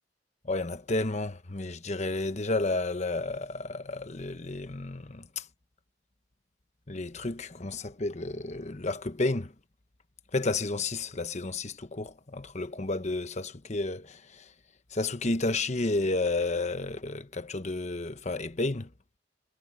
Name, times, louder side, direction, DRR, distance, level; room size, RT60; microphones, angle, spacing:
voice 1, 0.4-5.5 6.9-9.5 10.3-14.5 14.9-18.9, left 2 dB, 40° left, 1.1 m, -31 dB
head